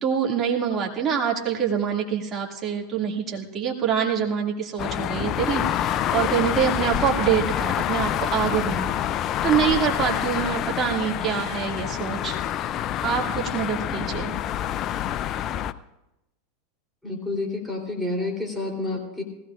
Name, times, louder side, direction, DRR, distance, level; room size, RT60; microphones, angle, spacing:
voice 1, 0.0-9.1 9.4-12.4 13.0-14.3, right 7 dB, 35° right, 0 dB, 2.3 m, -25 dB
sound 1, 4.8-15.7, left 11 dB, 40° left, 0.5 m, -27 dB
voice 2, 17.0-19.2, left 2 dB, ahead, 0 dB, 3.4 m, -29 dB
20.0 x 16.5 x 2.5 m, 0.95 s
hypercardioid pair, 90°, 0 cm